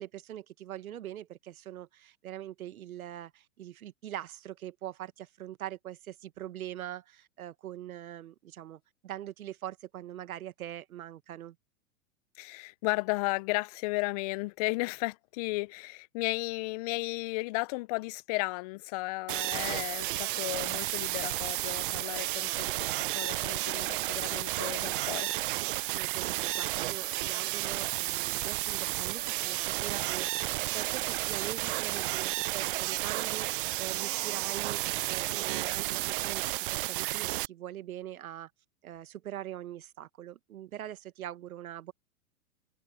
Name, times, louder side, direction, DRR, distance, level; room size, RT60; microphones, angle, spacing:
voice 1, 0.0-11.5 25.7-38.5 38.8-41.9, right 12 dB, 70° right, 1.6 m, -43 dB
voice 2, 12.4-25.3, left 25 dB, 25° left, 0.5 m, -34 dB
sound 1, 19.3-37.5, right 18 dB, 40° right, 0.5 m, -32 dB
hypercardioid pair, 125°, 45 cm